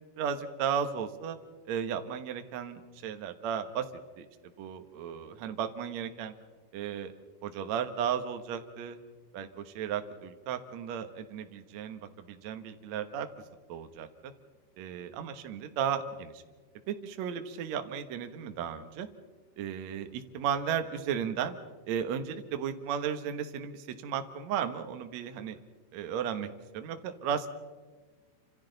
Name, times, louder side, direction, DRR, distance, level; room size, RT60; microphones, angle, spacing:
voice 1, 0.2-1.4 1.7-3.8 4.2-4.3 4.6-6.3 6.7-7.1 7.4-9.0 9.3-13.3 13.7-14.3 14.8-16.4 16.9-19.1 19.6-21.6 21.9-25.6 25.9-26.5 26.7-27.5, right 8 dB, 85° right, 7 dB, 1.5 m, -34 dB
29.5 x 26.0 x 4.0 m, 1.3 s
omnidirectional pair, 5.1 m